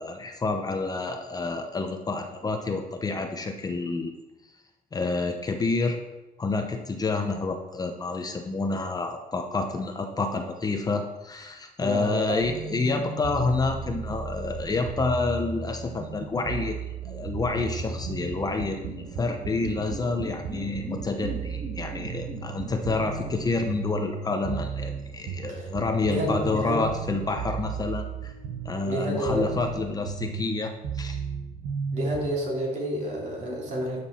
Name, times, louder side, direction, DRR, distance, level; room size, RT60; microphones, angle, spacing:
voice 1, 0.0-4.1 4.9-6.0 6.4-16.8 17.0-28.3 28.6-31.2, left 3 dB, 25° left, 5 dB, 0.8 m, -28 dB
voice 2, 11.8-12.4 25.5-25.7 26.1-26.8 28.8-29.5 31.9-34.0, right 1 dB, 50° right, -3 dB, 3.2 m, -29 dB
sound 1, 12.4-32.3, right 5 dB, 85° right, 1.0 m, -35 dB
sound 2, 16.8-25.8, right 1 dB, 25° right, 2.0 m, -43 dB
9.9 x 6.1 x 4.4 m, 1.0 s
cardioid pair, 120°, 15 cm